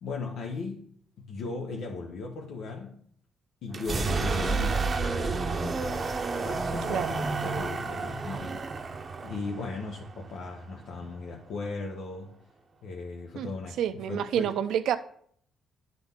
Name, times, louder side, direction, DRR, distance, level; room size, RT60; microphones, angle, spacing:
voice 1, 0.0-0.8 1.2-3.0 3.6-6.1 6.4-8.6 9.2-12.3 12.8-13.8 14.1-14.6, left 4 dB, 80° left, 0 dB, 0.9 m, -37 dB
sound 1, 3.7-11.4, right 4 dB, 35° right, 0.7 m, -31 dB
voice 2, 13.8-15.0, right 9 dB, 80° right, 11 dB, 0.5 m, -28 dB
10.5 x 4.0 x 3.6 m, 0.63 s
cardioid pair, 90°, 0 cm